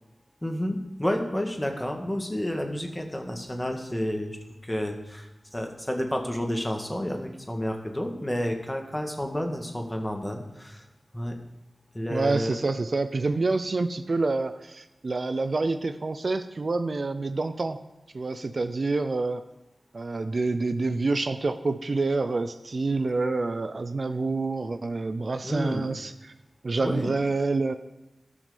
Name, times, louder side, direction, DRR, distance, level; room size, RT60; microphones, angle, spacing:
voice 1, 0.4-4.4 4.6-10.8 11.1-11.3 11.9-12.6 25.4-25.9 26.8-27.1, equal, 15° left, 3 dB, 1.9 m, -30 dB
voice 2, 12.1-17.8 18.1-19.4 19.9-26.3 26.6-27.7, right 3 dB, 60° right, 10 dB, 0.5 m, -27 dB
13.5 x 6.2 x 5.2 m, 0.99 s
cardioid pair, 40°, 0 cm